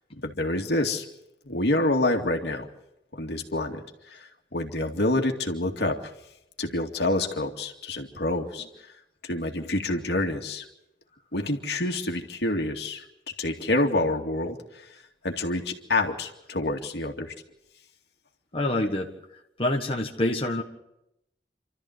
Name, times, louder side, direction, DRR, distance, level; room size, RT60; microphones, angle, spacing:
voice 1, 0.2-1.0 1.4-2.7 3.1-3.8 4.1-6.0 6.6-8.7 9.2-10.6 11.3-13.0 13.4-14.6 15.2-17.3, left 2 dB, 70° left, 3 dB, 2.3 m, -27 dB
voice 2, 18.5-19.1 19.6-20.6, left 1 dB, 30° left, 0 dB, 1.6 m, -26 dB
28.0 x 13.5 x 8.0 m, 0.85 s
head